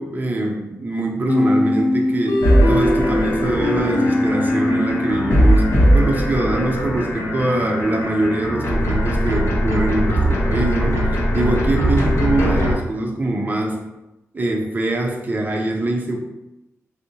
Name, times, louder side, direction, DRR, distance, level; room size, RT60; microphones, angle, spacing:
voice 1, 0.0-13.8 14.3-16.2, right 2 dB, 35° right, 0 dB, 0.6 m, -23 dB
sound 1, 1.3-5.9, left 1 dB, 85° left, 0.6 m, -21 dB
sound 2, 2.4-12.7, equal, 55° left, 0.9 m, -20 dB
4.4 x 2.0 x 2.7 m, 0.96 s
wide cardioid pair, 95°, 5 cm